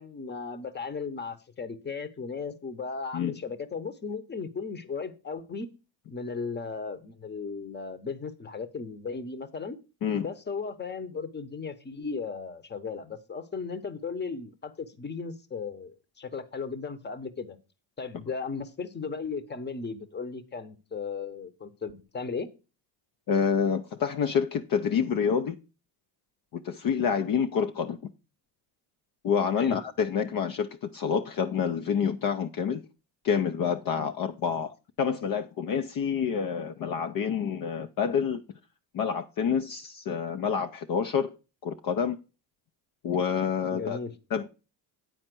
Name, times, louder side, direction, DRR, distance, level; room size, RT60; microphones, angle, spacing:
voice 1, 0.0-5.7 6.1-9.8 10.2-17.6 18.0-22.5 29.6-29.8 43.7-44.1, left 5 dB, 25° left, 0.9 m, -36 dB
voice 2, 23.3-25.6 26.5-28.0 29.2-32.8 33.2-38.4 38.9-41.3 41.6-42.2 43.0-44.0 44.3-44.5, left 7 dB, 50° left, 0.7 m, -28 dB
9.2 x 4.3 x 6.0 m
cardioid pair, 100°, 44 cm